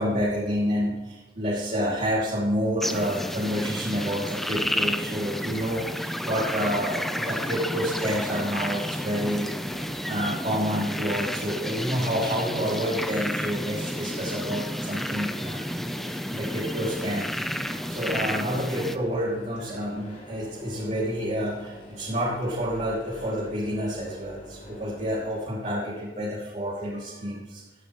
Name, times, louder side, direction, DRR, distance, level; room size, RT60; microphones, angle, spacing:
voice 1, 0.0-17.4 17.9-27.6, equal, 45° right, -6 dB, 2.8 m, -29 dB
sound 1, 2.8-19.0, equal, ahead, 0.7 m, -31 dB
sound 2, 7.6-25.4, left 1 dB, 45° left, 5.2 m, -46 dB
17.5 x 14.0 x 3.2 m, 1.2 s
head